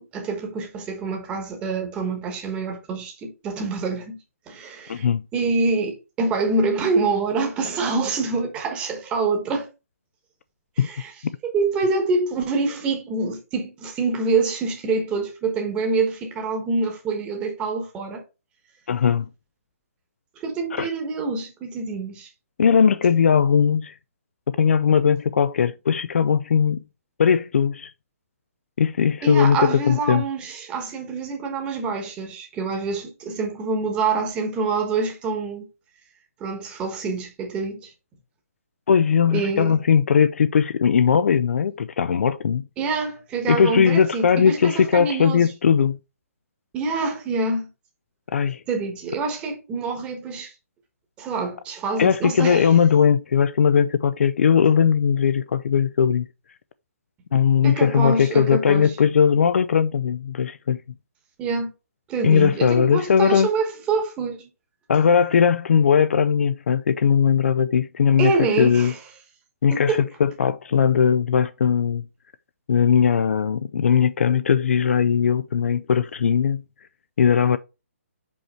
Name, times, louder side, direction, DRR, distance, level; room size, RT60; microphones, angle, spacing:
voice 1, 0.0-4.2 4.5-9.7 10.8-11.1 11.4-18.2 20.4-22.3 29.2-35.7 36.4-37.9 39.3-39.8 42.8-45.5 46.7-47.7 48.7-50.5 51.2-52.7 57.6-58.9 61.4-61.7 62.1-64.5 68.2-69.0 69.7-70.0, right 4 dB, 15° right, 1.2 m, -26 dB
voice 2, 4.9-5.2 10.8-10.9 18.9-19.3 20.7-20.9 22.6-23.9 24.5-26.8 27.2-27.9 28.8-30.2 38.9-42.7 43.5-46.0 48.3-48.6 52.0-56.3 57.3-60.8 62.2-63.5 64.9-68.9 69.6-72.0 72.7-76.6 77.2-77.6, left 7 dB, 65° left, 0.5 m, -19 dB
5.4 x 4.8 x 4.3 m
hypercardioid pair, 165°, 8 cm